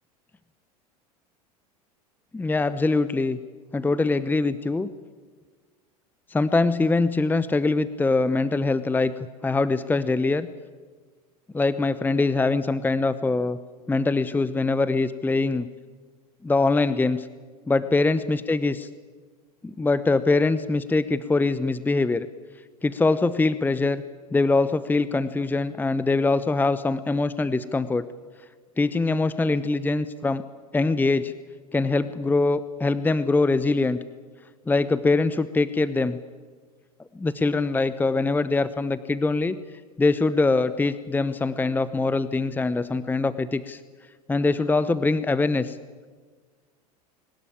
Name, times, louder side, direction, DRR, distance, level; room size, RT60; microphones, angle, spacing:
voice 1, 2.3-3.4 3.7-4.9 6.3-9.1 9.4-10.5 11.5-13.6 13.9-15.7 16.4-17.3 17.7-18.9 19.6-22.3 22.8-24.0 24.3-28.0 28.8-30.4 30.7-31.3 31.7-34.0 34.7-36.2 37.1-39.6 40.0-43.8 44.3-45.8, left 3 dB, 10° left, 14 dB, 0.8 m, -23 dB
22.0 x 19.5 x 8.8 m, 1.5 s
figure-of-eight pair, 80°, 20 cm